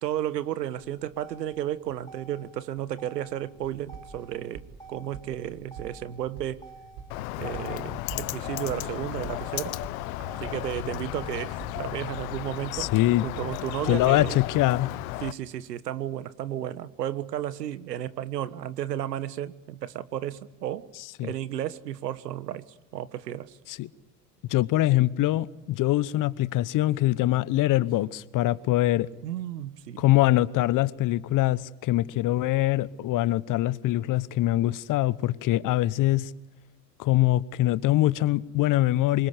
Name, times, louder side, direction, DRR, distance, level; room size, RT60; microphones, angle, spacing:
voice 1, 0.0-6.6 7.4-9.8 10.4-12.9 13.2-14.4 15.2-20.9 21.2-23.6 29.2-30.0, right 11 dB, 80° right, 1.5 m, -33 dB
Motor vehicle (road), 0.7-12.7, right 3 dB, 5° left, 5.3 m, -51 dB
sound 1, 3.5-14.4, right 6 dB, 55° right, 5.5 m, -46 dB
Bird, 7.1-15.3, left 18 dB, 60° left, 1.3 m, -34 dB
voice 2, 12.7-13.3 13.9-14.9 21.2-21.3 23.7-23.9 24.5-29.1 30.0-36.3 37.0-39.3, left 15 dB, 40° left, 1.1 m, -23 dB
27.0 x 24.0 x 8.2 m
hypercardioid pair, 80°, 49 cm